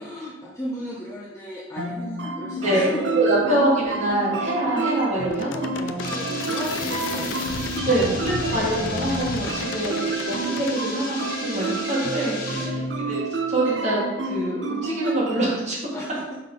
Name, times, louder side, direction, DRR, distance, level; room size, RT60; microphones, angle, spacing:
voice 1, 0.0-3.2 6.0-8.3 12.5-13.2 15.9-16.3, equal, 15° left, -6 dB, 0.7 m, -35 dB
sound 1, 1.8-15.5, right 3 dB, 75° right, 0.6 m, -29 dB
voice 2, 3.2-6.3 7.8-13.2 13.5-15.8, right 1 dB, 40° right, -4 dB, 1.7 m, -25 dB
sound 2, 5.3-10.8, left 4 dB, 85° left, 0.5 m, -33 dB
sound 3, 6.0-12.7, left 3 dB, 50° left, 1.2 m, -35 dB
5.7 x 3.7 x 5.1 m, 1.0 s
head